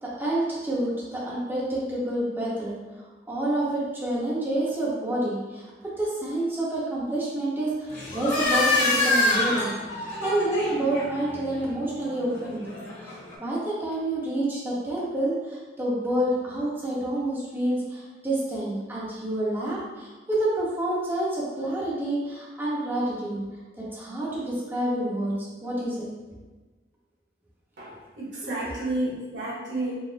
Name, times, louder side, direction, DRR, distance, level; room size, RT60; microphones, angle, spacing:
voice 1, 0.0-2.8 3.3-23.4 23.8-25.3 25.6-26.1 28.8-28.9, right 1 dB, 10° right, -7 dB, 0.9 m, -28 dB
sound 1, 7.9-13.3, left 2 dB, 45° left, 1.2 m, -27 dB
voice 2, 27.8-29.9, right 2 dB, 75° right, -6 dB, 1.4 m, -31 dB
4.0 x 2.0 x 4.0 m, 1.2 s
head